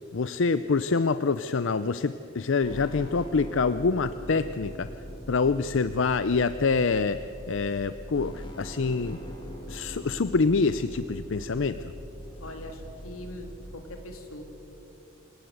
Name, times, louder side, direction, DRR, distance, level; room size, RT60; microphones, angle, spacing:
voice 1, 0.1-4.9 5.3-9.2 9.7-11.8, left 4 dB, 65° left, 12 dB, 0.5 m, -26 dB
sound 1, 2.6-13.8, equal, 25° left, 2.5 m, -42 dB
voice 2, 12.4-14.4, left 1 dB, 90° left, 4 dB, 3.4 m, -41 dB
28.0 x 18.0 x 8.0 m, 2.9 s
head